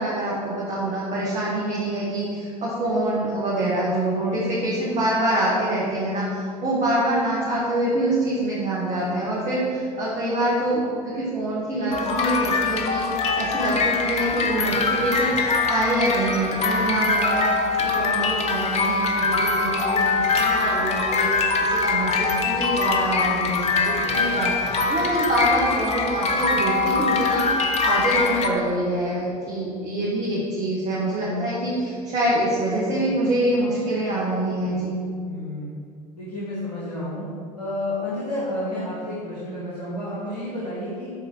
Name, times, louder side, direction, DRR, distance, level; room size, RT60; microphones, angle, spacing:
voice 1, 0.0-17.5 17.8-34.9, right 1 dB, 35° right, -7 dB, 2.4 m, -25 dB
sound 1, 11.9-28.5, left 4 dB, 35° left, 1.1 m, -23 dB
voice 2, 35.2-35.7 36.2-37.3 37.6-41.1, left 1 dB, 80° left, -9 dB, 2.0 m, -30 dB
12.5 x 4.8 x 4.9 m, 2.3 s
figure-of-eight pair, 75°, 20 cm